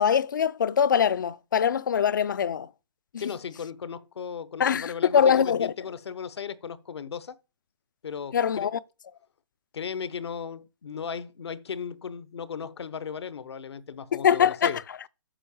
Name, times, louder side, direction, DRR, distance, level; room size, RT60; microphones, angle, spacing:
voice 1, 0.0-2.7 4.6-5.7 8.3-8.8 14.2-14.7, left 8 dB, 45° left, 0.4 m, -23 dB
voice 2, 3.2-7.4 8.0-8.7 9.7-14.8, left 7 dB, 65° left, 0.8 m, -36 dB
7.0 x 5.4 x 7.0 m
hypercardioid pair, 170°, 15 cm